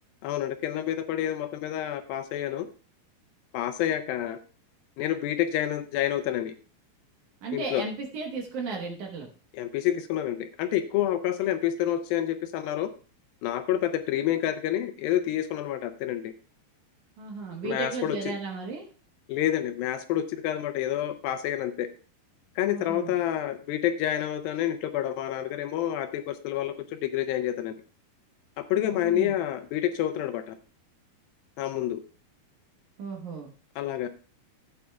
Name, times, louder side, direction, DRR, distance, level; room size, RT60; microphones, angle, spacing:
voice 1, 0.2-2.7 3.5-4.4 5.0-6.5 7.5-7.8 9.5-12.9 13.4-16.3 17.6-18.2 19.3-21.9 22.6-27.7 28.6-30.6 31.6-32.0 33.8-34.1, left 11 dB, 80° left, 9 dB, 2.2 m, -28 dB
voice 2, 7.4-9.3 17.2-18.8 22.6-23.2 29.0-29.4 33.0-33.5, right 4 dB, 65° right, 1 dB, 2.2 m, -35 dB
15.5 x 8.6 x 2.3 m, 0.37 s
omnidirectional pair, 4.4 m